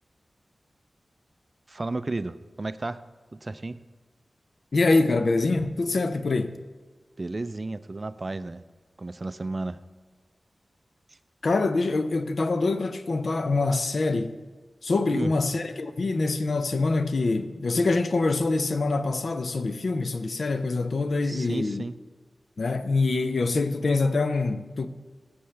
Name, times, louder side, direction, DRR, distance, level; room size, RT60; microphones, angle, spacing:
voice 1, 1.7-3.0 3.3-3.8 7.2-8.6 9.0-9.8 15.1-15.3 21.2-21.9, right 2 dB, 40° right, 0.4 m, -33 dB
voice 2, 4.7-6.6 11.4-14.4 14.8-21.9 22.6-24.9, left 3 dB, 65° left, 0.6 m, -25 dB
15.5 x 7.8 x 3.3 m
wide cardioid pair, 75°, 0 cm